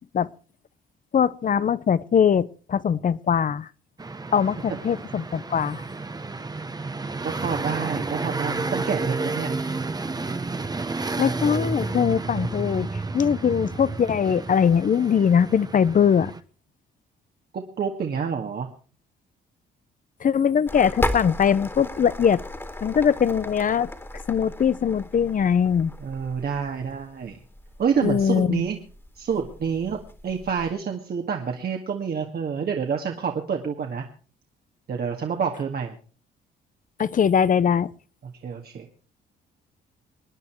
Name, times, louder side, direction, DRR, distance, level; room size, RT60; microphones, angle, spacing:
voice 1, 1.1-3.7 4.3-5.8 11.2-12.9 13.1-16.3 20.2-22.4 22.8-23.9 24.3-25.9 28.0-28.6 37.0-37.9, left 7 dB, 40° left, 0.8 m, -21 dB
sound 1, 4.0-16.4, right 3 dB, 20° right, 1.2 m, -31 dB
voice 2, 7.2-9.6 17.5-18.7 26.0-27.4 27.8-28.8 29.2-30.0 30.2-34.0 34.9-36.0 38.4-38.9, right 6 dB, 50° right, 2.0 m, -28 dB
sound 2, 20.7-30.7, left 1 dB, 10° left, 2.2 m, -35 dB
25.0 x 9.8 x 4.6 m
cardioid pair, 90°, 20 cm